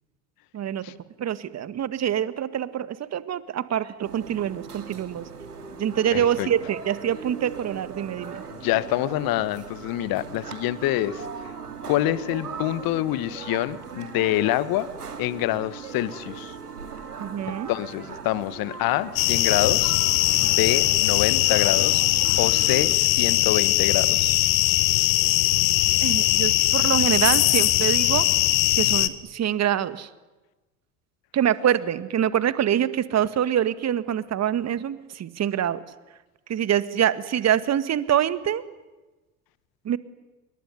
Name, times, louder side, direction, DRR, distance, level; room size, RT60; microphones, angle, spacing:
voice 1, 0.5-5.3 5.8-8.4 17.2-17.7 26.0-28.3 28.8-30.1 31.3-35.8 36.5-38.6 39.9-40.0, right 10 dB, 35° right, 14 dB, 1.8 m, -25 dB
sound 1, 4.0-22.9, right 5 dB, 90° right, 2.7 m, -39 dB
voice 2, 6.1-6.5 8.5-11.2 11.9-14.9 15.2-16.6 17.5-19.9 20.4-22.0 22.4-24.3, left 15 dB, 50° left, 16 dB, 1.6 m, -26 dB
sound 2, 19.2-29.1, left 17 dB, 65° left, 1.8 m, -20 dB
27.0 x 22.5 x 9.8 m, 1.1 s
hypercardioid pair, 75°, 45 cm